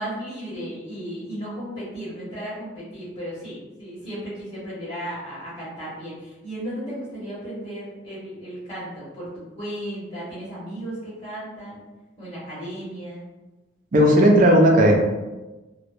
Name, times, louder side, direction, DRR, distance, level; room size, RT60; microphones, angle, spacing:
voice 1, 0.0-11.8 12.2-13.3, right 1 dB, 25° left, -9 dB, 0.8 m, -35 dB
voice 2, 13.9-15.0, equal, 45° right, 0 dB, 0.4 m, -15 dB
2.2 x 2.0 x 3.0 m, 1.1 s
head